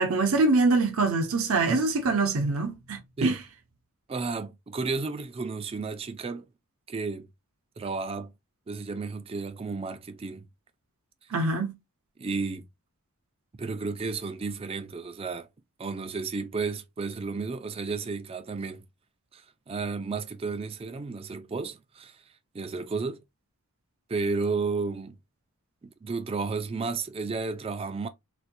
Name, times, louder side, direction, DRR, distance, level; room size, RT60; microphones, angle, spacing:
voice 1, 0.0-3.4 11.3-11.8, right 3 dB, 70° right, 0.6 m, -24 dB
voice 2, 4.1-6.5 6.9-7.3 7.8-8.3 8.7-10.4 12.2-12.7 13.6-15.5 15.8-18.8 19.3-19.4 19.7-22.2 22.5-23.2 24.1-25.1 26.0-28.1, right 4 dB, 25° right, 0.3 m, -32 dB
4.2 x 2.2 x 2.5 m
head